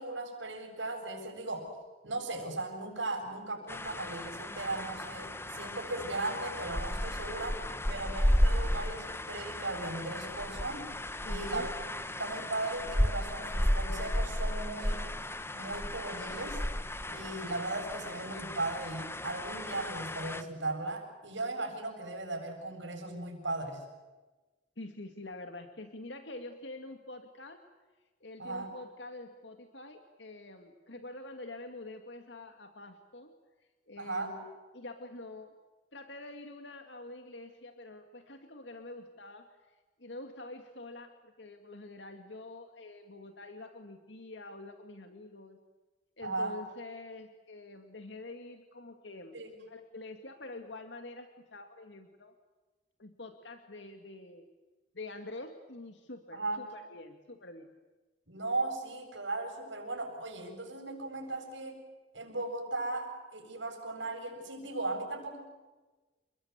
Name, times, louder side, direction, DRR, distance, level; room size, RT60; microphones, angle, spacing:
voice 1, 0.0-1.7 2.0-7.6 7.9-10.9 11.3-11.7 12.1-15.1 15.5-16.6 17.1-23.8 28.4-28.8 34.0-34.3 46.2-46.6 49.3-49.5 56.3-56.6 58.3-61.8 62.1-65.4, right 2 dB, 85° right, 4 dB, 8.0 m, -37 dB
sound 1, 3.7-20.4, left 1 dB, 15° left, 1.5 m, -34 dB
voice 2, 11.2-11.7 24.8-27.6 28.2-33.3 33.9-35.5 35.9-45.6 46.2-49.4 49.7-52.4 53.0-54.5 54.9-57.7, left 2 dB, 70° left, 6 dB, 2.3 m, -46 dB
29.0 x 22.0 x 8.3 m, 1.2 s
head